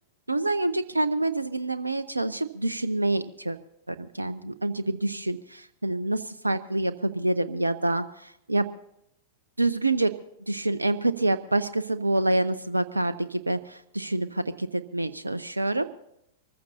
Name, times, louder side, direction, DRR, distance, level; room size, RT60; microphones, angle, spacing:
voice 1, 0.3-3.6 3.9-8.7 9.6-10.1 10.5-15.9, right 2 dB, 90° right, 12 dB, 0.5 m, -27 dB
25.0 x 14.5 x 2.9 m, 0.80 s
figure-of-eight pair, 100°, 0 cm